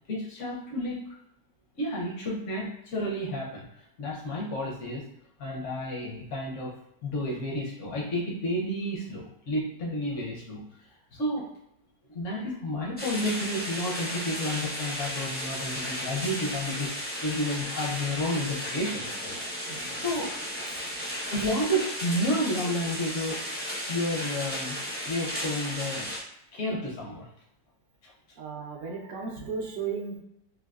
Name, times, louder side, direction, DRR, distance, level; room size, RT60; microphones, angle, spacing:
voice 1, 0.1-1.0 1.8-3.6 4.0-5.1 5.4-11.5 12.1-19.3 19.9-20.3 21.3-23.4 23.9-24.8 25.1-26.1 26.5-27.3 28.0-28.1, left 1 dB, 65° left, -3 dB, 0.7 m, -31 dB
sound 1, 13.0-26.2, equal, 15° left, 0.4 m, -34 dB
voice 2, 19.7-20.0 20.7-20.8 28.4-30.2, right 5 dB, 70° right, 0 dB, 0.8 m, -35 dB
3.7 x 2.5 x 2.3 m, 0.80 s
omnidirectional pair, 2.0 m